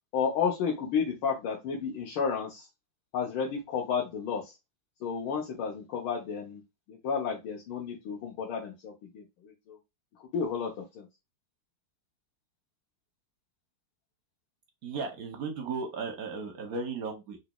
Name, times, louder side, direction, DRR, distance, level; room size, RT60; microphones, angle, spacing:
voice 1, 0.1-2.7 3.1-4.5 5.0-6.6 6.9-9.8 10.2-11.1, left 6 dB, 85° left, -1 dB, 1.7 m, -32 dB
voice 2, 14.8-17.4, right 4 dB, 60° right, 4 dB, 1.0 m, -35 dB
3.9 x 3.0 x 2.2 m, 0.23 s
omnidirectional pair, 2.2 m